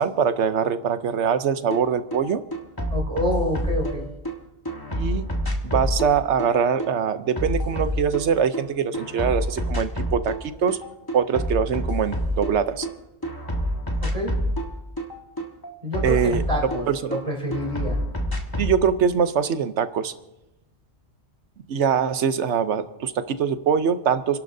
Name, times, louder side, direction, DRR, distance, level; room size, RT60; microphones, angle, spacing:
voice 1, 0.0-2.4 4.9-5.3 5.6-10.8 11.1-12.9 16.0-16.4 16.9-17.1 18.6-20.1 21.7-24.4, right 7 dB, 85° right, 11 dB, 1.1 m, -23 dB
sound 1, 1.7-1.8 2.1-4.3 4.7-8.6 8.9-10.4 10.7-12.9 13.2-17.2 17.5-18.8, equal, 20° left, 1.5 m, -27 dB
voice 2, 2.9-4.1 14.0-14.4 15.8-18.0, equal, 30° right, -3 dB, 3.6 m, -27 dB
29.5 x 11.5 x 2.7 m, 0.95 s
omnidirectional pair, 1.1 m